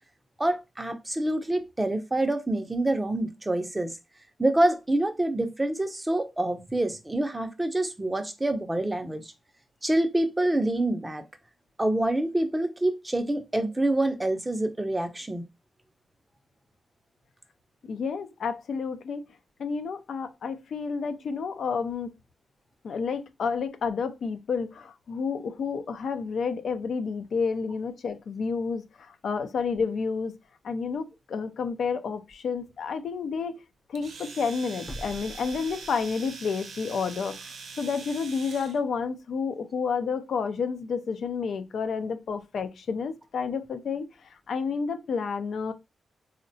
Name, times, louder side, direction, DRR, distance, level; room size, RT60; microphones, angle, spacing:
voice 1, 0.4-3.9 4.4-9.3 9.8-11.2 11.8-15.4, right 1 dB, 15° right, 0.4 m, -26 dB
voice 2, 17.9-19.2 19.6-22.1 22.8-30.3 30.6-33.6 33.9-37.4 37.8-45.7, left 5 dB, 75° left, 0.3 m, -30 dB
sound 1, 31.6-31.7 32.3-32.4 34.8-36.3 36.7-36.8, equal, 40° left, 0.7 m, -44 dB
Domestic sounds home sounds, 34.0-38.8, right 4 dB, 85° right, 0.5 m, -43 dB
3.6 x 2.1 x 2.6 m
wide cardioid pair, 115°, 0 cm